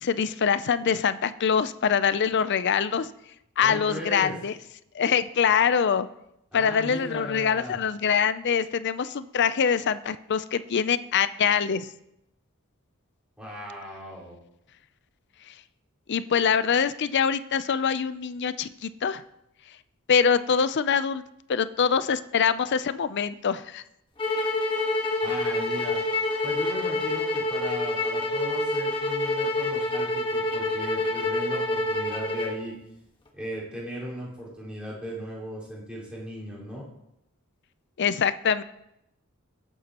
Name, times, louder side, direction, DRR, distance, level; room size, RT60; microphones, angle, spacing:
voice 1, 0.0-3.1 3.6-4.5 4.9-6.1 6.5-11.9 15.5-15.6 16.1-19.2 20.1-21.2 21.5-23.8 38.0-38.6, left 7 dB, 55° left, 14 dB, 0.5 m, -24 dB
voice 2, 3.6-4.3 6.5-7.8 13.4-14.4 25.2-26.0 26.4-32.8 33.3-36.9, equal, 5° right, -8 dB, 4.5 m, -37 dB
sound 1, 24.2-32.6, left 2 dB, 25° left, 1.4 m, -27 dB
18.5 x 8.3 x 3.0 m, 0.83 s
head